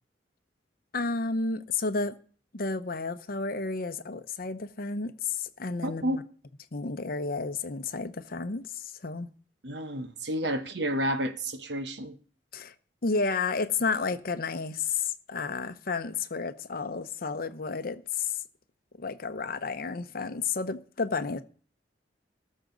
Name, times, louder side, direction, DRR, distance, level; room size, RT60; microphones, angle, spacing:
voice 1, 0.9-2.1 2.5-6.0 6.7-9.3 12.5-12.7 13.0-18.4 19.0-21.4, left 4 dB, 55° left, 0.8 m, -31 dB
voice 2, 5.8-6.2 9.6-12.2, equal, 65° right, 1.1 m, -30 dB
18.5 x 6.4 x 3.9 m
head